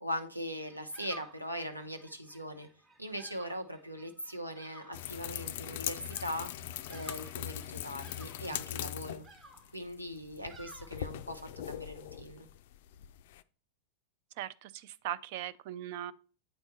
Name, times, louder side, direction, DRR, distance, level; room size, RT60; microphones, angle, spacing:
voice 1, 0.0-2.7 3.0-6.5 6.9-9.2 9.7-11.4 11.7-12.5, equal, 85° right, 0.9 m, -40 dB
Bird vocalization bird call bird song, 0.6-11.6, right 3 dB, 25° right, 1.1 m, -56 dB
sound 1, 4.9-13.4, left 12 dB, 55° left, 0.3 m, -41 dB
voice 2, 14.4-16.1, right 12 dB, 50° right, 0.4 m, -39 dB
8.8 x 4.4 x 4.1 m
figure-of-eight pair, 90°, 0 cm